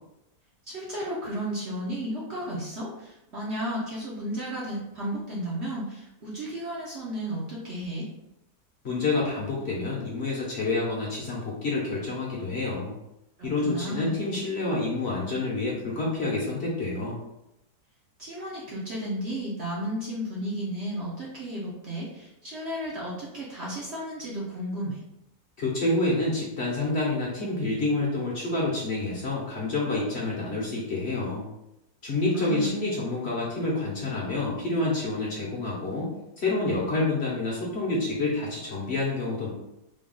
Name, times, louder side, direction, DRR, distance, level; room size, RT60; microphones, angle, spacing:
voice 1, 0.7-8.1 13.4-14.2 18.2-25.0 32.3-32.8, equal, 55° right, -5 dB, 0.9 m, -33 dB
voice 2, 8.8-12.9 13.4-17.2 25.6-31.5 32.0-36.1 36.4-39.5, left 2 dB, 50° left, -5 dB, 1.0 m, -28 dB
3.6 x 2.3 x 3.8 m, 0.88 s
omnidirectional pair, 1.7 m